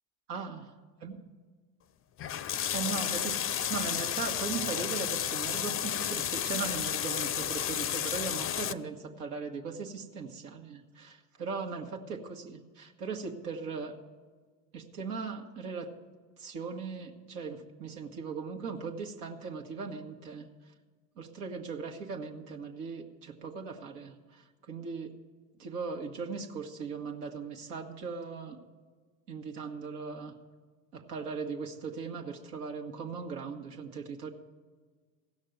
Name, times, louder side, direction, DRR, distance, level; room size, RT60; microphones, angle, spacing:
voice 1, 0.3-0.7 1.0-1.2 2.3-2.4 2.7-14.0 14.7-15.9 16.4-20.5 21.2-25.1 25.6-28.6 29.3-30.3 30.9-34.3, right 5 dB, 85° right, 2 dB, 1.5 m, -38 dB
sound 1, 2.2-8.7, left 10 dB, 30° left, 0.5 m, -32 dB
15.5 x 6.4 x 7.8 m, 1.4 s
hypercardioid pair, 80°, 44 cm